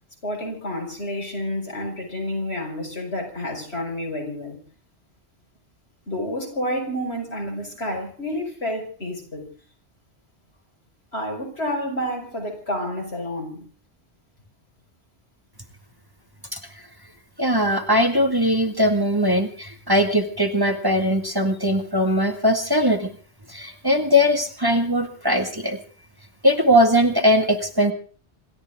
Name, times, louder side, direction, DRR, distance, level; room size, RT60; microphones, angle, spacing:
voice 1, 0.2-4.6 6.1-9.5 11.1-13.7, left 1 dB, 70° left, 2 dB, 6.2 m, -29 dB
voice 2, 17.4-23.1 23.5-25.8 26.4-27.9, equal, 20° right, 4 dB, 2.0 m, -20 dB
27.0 x 13.5 x 3.7 m, 0.40 s
omnidirectional pair, 1.1 m